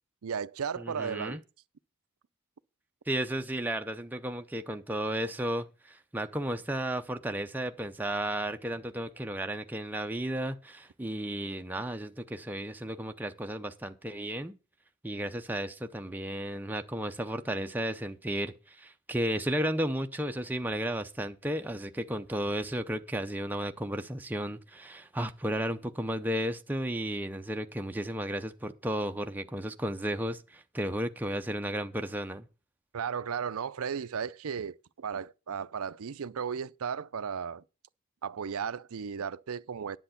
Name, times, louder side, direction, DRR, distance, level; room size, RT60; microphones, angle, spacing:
voice 1, 0.2-1.4 32.9-37.6 38.2-40.0, right 7 dB, 70° right, 0.5 m, -35 dB
voice 2, 0.8-1.4 3.1-14.6 15.0-32.5, right 1 dB, 10° right, 0.6 m, -33 dB
10.5 x 7.7 x 5.7 m
head